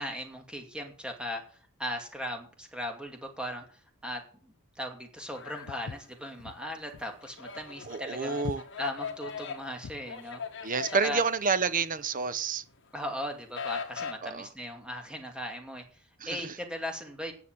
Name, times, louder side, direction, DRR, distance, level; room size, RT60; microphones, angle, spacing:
voice 1, 0.0-8.4 8.8-10.4 10.9-11.2 12.9-17.3, equal, 5° right, 2.4 m, -38 dB
sound 1, 5.3-6.4 6.8-12.2 12.5-14.1, left 5 dB, 60° left, 1.7 m, -40 dB
Walk footsteps, 5.7-10.1, left 5 dB, 80° left, 0.5 m, -43 dB
voice 2, 7.9-8.6 10.6-12.6 14.2-14.5 16.2-16.6, right 5 dB, 40° right, 0.8 m, -29 dB
9.8 x 7.0 x 7.9 m
head